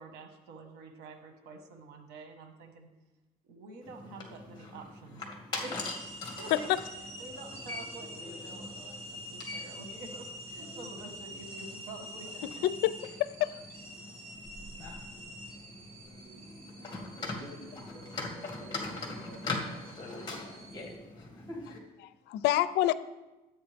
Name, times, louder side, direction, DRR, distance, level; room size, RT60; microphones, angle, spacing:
voice 1, 0.0-2.9 3.4-5.8 6.4-6.7 7.2-12.7, right 3 dB, 90° right, 5 dB, 1.4 m, -48 dB
sound 1, 3.8-21.8, left 3 dB, 25° left, 2.1 m, -42 dB
sound 2, 5.6-21.0, equal, 35° right, 2.7 m, -47 dB
voice 2, 17.2-20.4, right 1 dB, 15° right, -6 dB, 3.5 m, -50 dB
voice 3, 22.0-22.9, left 14 dB, 85° left, 16 dB, 0.5 m, -27 dB
13.0 x 8.6 x 3.4 m, 1.1 s
cardioid pair, 110°, 17 cm